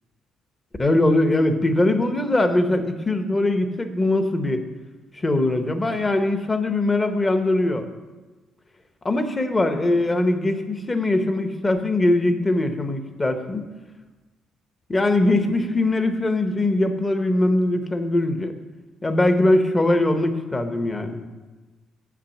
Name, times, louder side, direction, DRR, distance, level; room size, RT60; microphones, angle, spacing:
voice 1, 0.8-4.6 5.2-7.9 9.0-13.6 14.9-18.5 19.0-21.3, left 2 dB, 20° left, 8 dB, 0.8 m, -21 dB
7.0 x 5.9 x 7.1 m, 1.2 s
cardioid pair, 115°, 0 cm